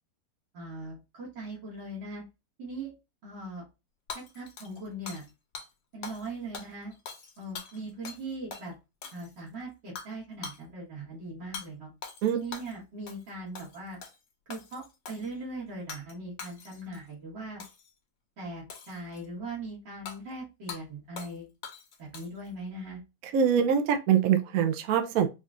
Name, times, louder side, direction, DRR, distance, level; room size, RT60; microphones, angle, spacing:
voice 1, 0.5-2.2 2.6-2.9 3.2-3.6 4.1-5.2 5.9-7.0 7.4-8.7 9.1-11.9 12.3-14.0 14.5-17.6 18.4-21.5 22.0-23.0, right 2 dB, 85° right, 2.4 m, -40 dB
Hammer / Shatter, 4.1-5.3 5.5-5.7 6.0-6.3 6.5-8.2 8.5-8.7 9.0-9.5 10.0-10.1 10.4-10.6 11.5-11.7 12.0-12.8 13.1-13.3 13.5-14.2 14.5-15.3 15.9-16.1 16.4-17.0 17.6-17.9 18.7-19.3 20.1-20.2 20.7-20.8 21.2-21.4 21.6-22.5, left 5 dB, 85° left, 1.5 m, -43 dB
voice 2, 23.3-25.3, right 8 dB, 70° right, 0.9 m, -24 dB
4.8 x 2.4 x 2.5 m
omnidirectional pair, 1.9 m